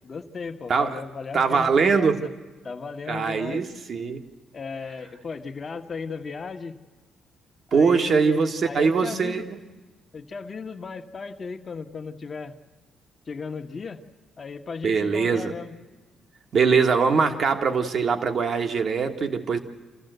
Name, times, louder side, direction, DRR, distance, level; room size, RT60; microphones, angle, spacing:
voice 1, 0.0-2.3 2.6-3.6 4.5-6.8 7.7-9.5 10.1-12.5 13.3-14.0 14.4-15.8, left 5 dB, 45° left, 7 dB, 1.3 m, -35 dB
voice 2, 0.7-1.0 1.3-2.2 3.1-4.2 7.7-9.6 14.8-15.5 16.5-19.6, right 5 dB, 55° right, 5 dB, 1.6 m, -22 dB
27.0 x 14.0 x 8.0 m, 1.3 s
supercardioid pair, 60°, 0 cm